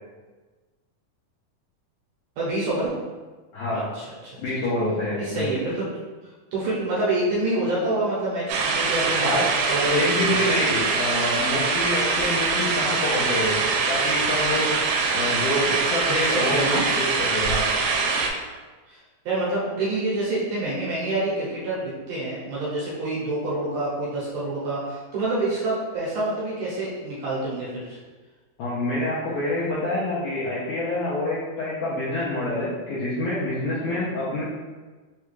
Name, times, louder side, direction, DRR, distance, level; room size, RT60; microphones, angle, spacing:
voice 1, 2.4-2.9 3.7-4.3 5.2-5.9 6.5-10.4 16.1-16.8 18.9-19.0 19.3-28.0, right 2 dB, 75° right, -7 dB, 2.1 m, -27 dB
voice 2, 3.5-3.9 4.4-5.5 9.2-9.5 9.9-14.8 15.1-17.7 28.6-34.4, left 1 dB, 75° left, -8 dB, 1.8 m, -27 dB
sound 1, 8.5-18.3, right 4 dB, 90° right, 2.4 m, -23 dB
5.7 x 2.3 x 3.1 m, 1.3 s
omnidirectional pair, 4.2 m